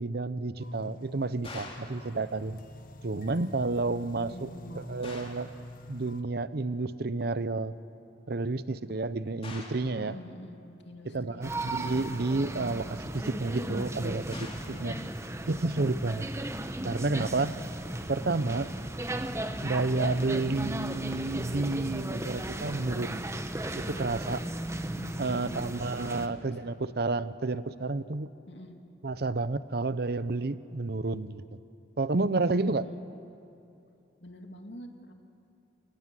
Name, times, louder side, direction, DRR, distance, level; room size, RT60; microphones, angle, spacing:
voice 1, 0.0-2.6 3.0-4.5 4.7-5.5 5.9-7.8 8.3-10.2 11.1-14.4 14.8-14.9 15.5-16.2 16.8-17.6 18.1-18.7 19.6-23.2 23.7-24.4 25.2-28.3 29.0-31.4 32.0-32.9, right 3 dB, 60° right, 15 dB, 0.7 m, -30 dB
sound 1, 0.6-6.2, left 1 dB, 50° left, 1.2 m, -48 dB
sound 2, 1.4-2.0 5.0-5.5 9.4-9.9 14.3-14.8, left 3 dB, 35° left, 3.1 m, -44 dB
voice 2, 4.1-4.8 10.0-10.6 10.8-11.4 14.7-15.0 18.4-18.8 24.9-25.6 26.0-26.7 28.5-28.8 32.4-33.0 34.2-35.1, left 1 dB, 75° left, 4 dB, 2.5 m, -46 dB
sound 3, 11.4-26.3, right 1 dB, 15° right, 1.1 m, -36 dB
29.0 x 19.0 x 7.7 m, 2.7 s
head